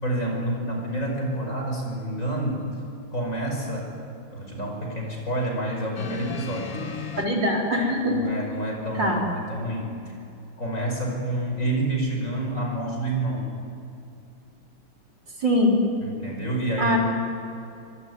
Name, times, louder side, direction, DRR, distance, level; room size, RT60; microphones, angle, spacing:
voice 1, 0.0-2.7 3.1-3.9 4.3-7.2 8.1-10.1 10.6-13.5 16.0-17.0, right 1 dB, 35° left, 1 dB, 6.0 m, -28 dB
sound 1, 6.0-7.3 8.3-8.4, left 8 dB, 85° left, 2.5 m, -35 dB
voice 2, 7.2-8.2 8.9-9.2 15.4-15.8 16.8-17.0, equal, 55° right, -1 dB, 4.8 m, -22 dB
25.5 x 23.5 x 9.6 m, 2.6 s
omnidirectional pair, 2.4 m